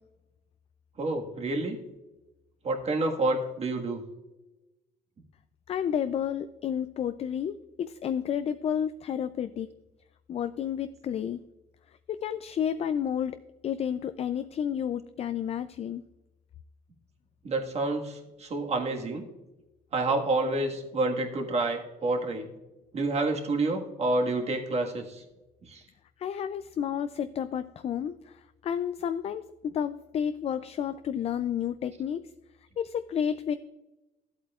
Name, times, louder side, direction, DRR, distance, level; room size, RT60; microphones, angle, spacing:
voice 1, 1.0-1.8 2.6-4.0 17.4-19.3 19.9-22.5 22.9-25.2 25.6-25.8, right 2 dB, 40° right, 2 dB, 1.6 m, -28 dB
voice 2, 5.7-9.7 10.3-11.4 12.1-16.0 26.2-32.3 32.8-33.5, left 8 dB, 40° left, 11 dB, 0.3 m, -31 dB
13.5 x 8.1 x 2.4 m, 1.0 s
cardioid pair, 110°, 17 cm